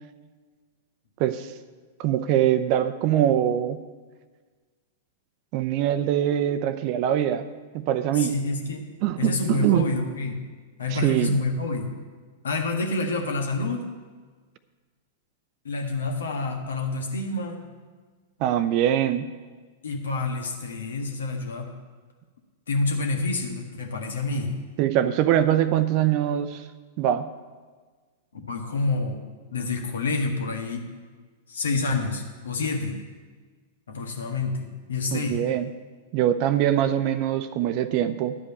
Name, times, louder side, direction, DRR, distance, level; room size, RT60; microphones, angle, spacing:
voice 1, 2.0-3.8 5.5-7.5 7.7-8.3 9.0-10.0 10.9-11.3 18.4-19.3 24.8-26.6 27.0-27.3 35.1-35.7 36.1-38.4, right 11 dB, 45° right, 12 dB, 0.6 m, -23 dB
voice 2, 8.1-8.9 9.2-10.4 10.8-11.9 12.4-13.9 15.6-17.6 19.8-21.7 22.7-24.5 28.3-29.2 29.5-30.9 31.5-33.0 33.9-35.4, left 3 dB, 75° left, 3 dB, 1.6 m, -28 dB
11.0 x 5.2 x 8.4 m, 1.4 s
figure-of-eight pair, 100°, 0 cm